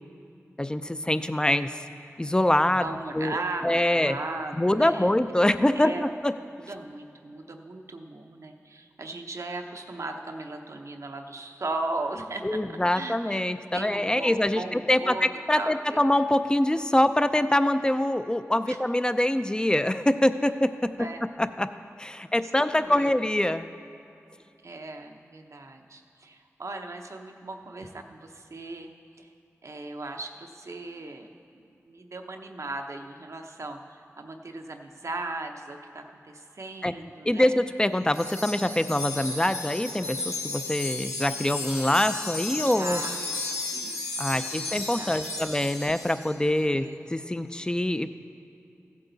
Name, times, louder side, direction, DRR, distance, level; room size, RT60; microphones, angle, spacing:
voice 1, 0.6-1.8 2.2-2.9 3.1-3.4 3.6-4.2 4.6-6.3 12.4-21.1 21.4-21.7 22.0-23.7 36.8-36.9 37.2-43.0 44.2-48.1, left 1 dB, 15° left, 11 dB, 0.5 m, -24 dB
voice 2, 2.7-5.1 5.7-6.1 6.7-12.6 12.9-16.1 18.7-18.8 21.0-21.2 22.4-23.2 24.6-28.9 29.2-29.3 29.6-37.5 42.6-44.0 44.2-45.2 46.7-47.0, right 2 dB, 70° right, 4 dB, 0.8 m, -38 dB
Wind chime, 38.1-46.3, left 3 dB, 80° left, 1.5 m, -34 dB
15.0 x 8.4 x 4.0 m, 2.7 s
cardioid pair, 45°, 5 cm